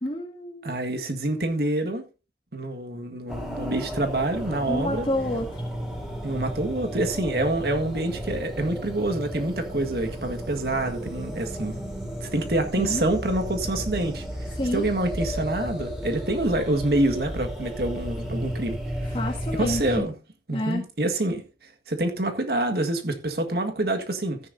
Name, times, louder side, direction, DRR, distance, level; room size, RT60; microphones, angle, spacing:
voice 1, 0.0-0.7 4.7-5.6 12.8-13.1 14.6-14.9 19.1-20.1 20.5-20.8, left 1 dB, 30° left, 1.6 m, -29 dB
voice 2, 0.6-2.0 2.5-5.1 6.2-11.8 12.2-14.3 14.7-18.8 19.5-20.1 20.5-21.4 21.9-24.4, right 1 dB, 60° right, 1.7 m, -26 dB
sound 1, 3.3-20.0, equal, 5° right, 3.1 m, -33 dB
13.5 x 10.0 x 2.7 m
head